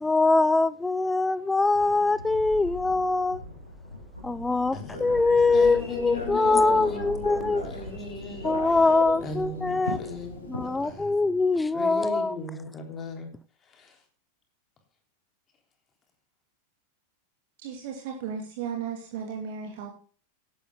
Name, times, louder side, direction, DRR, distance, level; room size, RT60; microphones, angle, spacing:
voice 1, 0.0-3.4 4.2-7.6 8.4-10.0 10.5-12.4, left 3 dB, 10° left, 17 dB, 0.6 m, -23 dB
Thunder, 1.2-11.9, left 1 dB, 90° right, 4.6 m, -43 dB
voice 2, 4.7-5.1 5.5-8.8 9.2-11.1 11.7-13.3 13.7-13.9, left 3 dB, 25° left, 4 dB, 3.5 m, -38 dB
Telephone, 4.9-11.0, left 1 dB, 75° left, 4.8 m, -37 dB
voice 3, 17.6-19.9, right 7 dB, 50° right, 2 dB, 2.6 m, -35 dB
17.5 x 12.0 x 2.3 m, 0.41 s
figure-of-eight pair, 90°, 0 cm